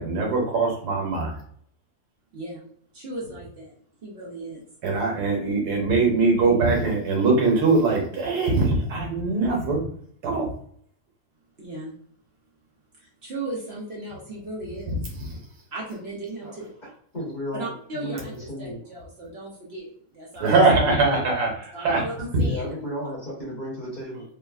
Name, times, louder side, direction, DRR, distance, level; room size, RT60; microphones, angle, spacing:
voice 1, 0.0-1.3 4.8-9.8 10.2-10.5 15.3-15.4 20.4-21.5 21.8-22.0 22.3-22.4, right 3 dB, 90° right, -1 dB, 1.5 m, -21 dB
voice 2, 2.3-2.6 2.9-3.7 4.0-4.7 11.6-11.9 13.0-15.0 15.7-16.7 17.5-18.3 18.6-19.9 20.1-20.6 21.7-22.7, right 2 dB, 50° right, -4 dB, 0.8 m, -36 dB
voice 3, 17.1-18.8 21.1-21.2 22.4-24.2, equal, 35° left, -7 dB, 1.1 m, -34 dB
3.3 x 2.0 x 2.3 m, 0.62 s
omnidirectional pair, 1.6 m